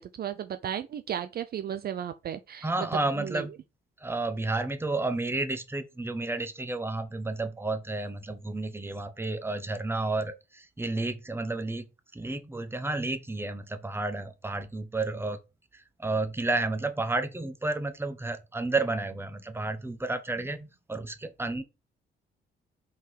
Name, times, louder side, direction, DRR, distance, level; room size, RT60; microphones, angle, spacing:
voice 1, 0.0-2.7 3.2-3.4, right 9 dB, 50° right, 0.5 m, -34 dB
voice 2, 2.6-3.5 4.0-11.8 12.1-15.4 15.7-21.6, right 2 dB, 10° right, 1.0 m, -31 dB
5.6 x 3.9 x 4.5 m
cardioid pair, 90°, 20 cm